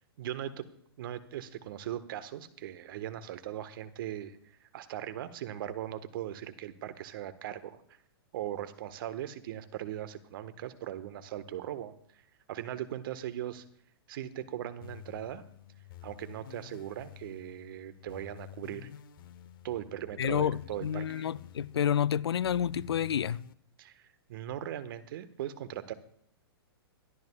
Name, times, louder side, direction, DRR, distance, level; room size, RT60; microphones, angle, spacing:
voice 1, 0.2-0.7 1.0-7.8 8.3-11.9 12.5-13.6 14.1-15.4 16.0-18.9 19.6-21.3 23.8-25.9, right 11 dB, 60° right, 1.4 m, -39 dB
sound 1, 14.8-23.5, left 13 dB, 60° left, 1.0 m, -51 dB
voice 2, 20.2-23.4, left 9 dB, 80° left, 0.5 m, -29 dB
24.0 x 12.5 x 2.4 m
hypercardioid pair, 125°, 13 cm